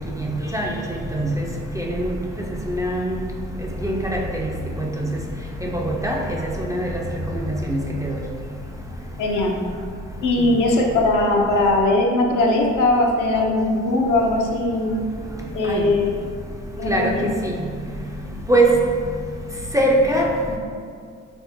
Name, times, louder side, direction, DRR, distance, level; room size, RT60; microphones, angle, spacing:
voice 1, 2.7-3.0 3.8-4.0 6.0-6.1 6.7-6.9 7.7-7.8 15.7-15.8 16.9-17.0 18.5-18.7 19.7-20.2, right 1 dB, 10° right, -2 dB, 0.4 m, -19 dB
voice 2, 9.2-9.6 10.2-15.0 15.5-16.1 16.8-17.3, left 2 dB, 65° left, 0 dB, 0.5 m, -20 dB
3.5 x 2.0 x 2.7 m, 2.2 s
hypercardioid pair, 40°, 34 cm